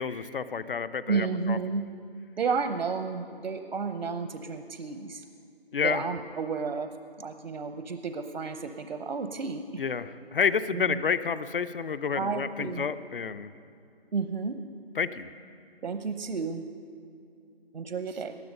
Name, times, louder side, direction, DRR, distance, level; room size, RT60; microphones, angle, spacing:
voice 1, 0.0-1.6 5.7-6.0 9.8-13.5 15.0-15.3, left 6 dB, 60° left, 14 dB, 0.7 m, -29 dB
voice 2, 1.1-1.9 2.4-5.2 5.8-6.9 7.2-9.8 10.7-11.0 12.1-12.9 14.1-14.6 15.8-16.6 17.7-18.4, right 5 dB, 70° right, 8 dB, 0.9 m, -32 dB
19.0 x 11.0 x 5.4 m, 2.5 s
figure-of-eight pair, 165°, 31 cm